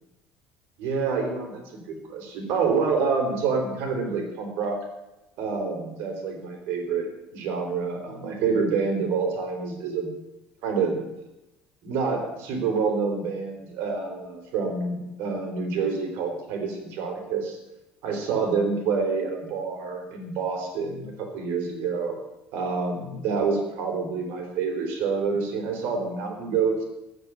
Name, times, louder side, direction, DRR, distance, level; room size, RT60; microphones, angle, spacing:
voice 1, 0.8-4.8 5.4-10.1 10.6-11.0 11.8-17.6 18.0-22.2 22.5-26.8, right 5 dB, 65° right, 3 dB, 4.0 m, -27 dB
14.5 x 6.4 x 9.7 m, 0.96 s
cardioid pair, 165°, 4 cm